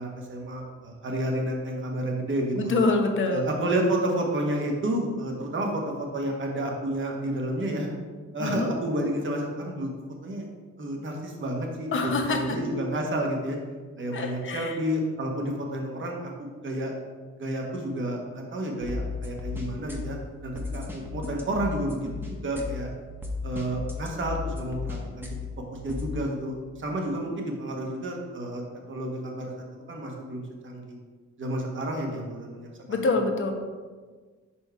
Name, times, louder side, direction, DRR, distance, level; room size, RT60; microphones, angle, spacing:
voice 1, 0.0-2.7 3.3-7.9 8.3-9.9 10.2-10.5 10.8-13.6 14.0-17.0 17.4-22.9 23.4-25.3 25.7-28.6 28.9-29.5 29.9-31.0 31.4-33.1, right 1 dB, 40° right, 1 dB, 1.3 m, -30 dB
voice 2, 2.5-3.4 8.4-8.7 11.9-12.6 14.1-14.8 32.9-33.5, left 3 dB, 40° left, 4 dB, 0.9 m, -25 dB
sound 1, 18.8-26.1, left 4 dB, 5° right, 1.1 m, -35 dB
5.2 x 4.5 x 4.6 m, 1.4 s
cardioid pair, 90°, 30 cm